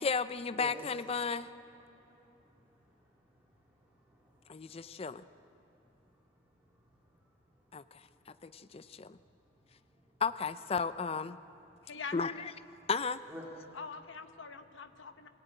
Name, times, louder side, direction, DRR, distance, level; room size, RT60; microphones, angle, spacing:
voice 1, 0.0-1.5 4.5-5.2 7.7-8.0 8.4-9.2 10.2-11.4 12.1-12.5 12.9-13.2, left 5 dB, 30° left, 13 dB, 0.4 m, -34 dB
voice 2, 1.9-4.9 6.7-6.8 7.1-7.2 8.3-8.5 13.3-13.4, equal, 10° right, -4 dB, 2.3 m, -53 dB
voice 3, 11.8-12.5 13.7-15.3, left 5 dB, 70° left, 8 dB, 1.0 m, -44 dB
22.5 x 16.5 x 9.1 m, 3.0 s
head